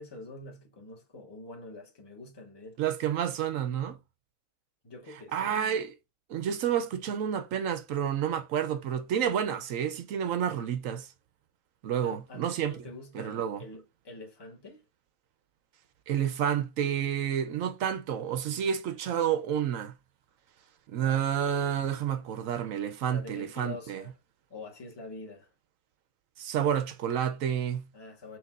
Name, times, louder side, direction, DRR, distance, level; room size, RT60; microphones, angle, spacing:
voice 1, 0.0-2.8 4.8-5.8 12.0-14.8 21.0-21.3 23.0-24.1 24.5-25.5 27.9-28.4, left 2 dB, 20° left, 1.1 m, -46 dB
voice 2, 2.8-4.0 5.3-5.9 6.3-11.1 11.8-12.8 13.1-13.6 16.1-19.9 20.9-24.0 26.4-27.9, right 9 dB, 65° right, 0.9 m, -29 dB
6.0 x 2.9 x 2.3 m
omnidirectional pair, 1.7 m